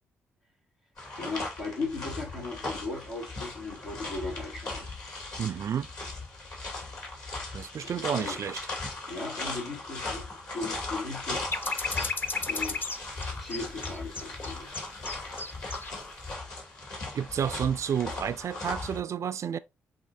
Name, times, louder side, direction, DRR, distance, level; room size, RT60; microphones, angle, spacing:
sound 1, 1.0-19.0, left 2 dB, 60° left, 2.1 m, -38 dB
voice 1, 1.2-4.9 7.8-8.4 9.1-10.2 10.5-12.0 12.5-14.7, left 3 dB, 85° left, 2.4 m, -37 dB
voice 2, 5.4-5.9 7.5-8.6 17.1-19.6, right 8 dB, 50° right, 0.4 m, -30 dB
sound 2, 11.3-15.9 16.2-16.3, left 4 dB, 30° left, 0.6 m, -34 dB
7.6 x 2.6 x 2.5 m
hypercardioid pair, 40°, 6 cm